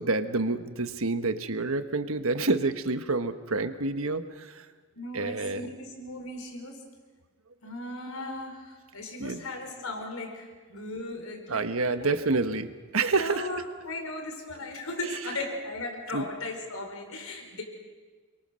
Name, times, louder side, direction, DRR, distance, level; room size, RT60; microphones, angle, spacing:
voice 1, 0.0-4.7 5.1-5.7 9.2-9.4 11.5-13.5 16.1-16.3, right 3 dB, 75° right, 10 dB, 1.4 m, -28 dB
voice 2, 5.0-6.8 7.6-12.1 13.2-17.6, left 2 dB, 85° left, 3 dB, 5.2 m, -37 dB
28.5 x 23.5 x 6.5 m, 1.4 s
head